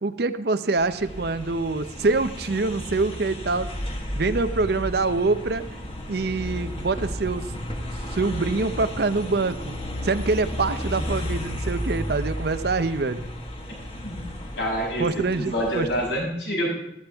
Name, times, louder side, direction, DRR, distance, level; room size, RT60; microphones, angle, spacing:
voice 1, 0.0-3.7 4.2-5.8 6.1-7.5 7.8-9.8 10.0-13.2 15.0-15.9, right 3 dB, 55° right, 11 dB, 0.6 m, -25 dB
sound 1, 0.8-16.1, equal, 30° left, 1.6 m, -33 dB
voice 2, 14.6-15.0 15.3-16.7, equal, 65° left, -1 dB, 5.9 m, -27 dB
16.0 x 13.0 x 3.5 m, 0.85 s
head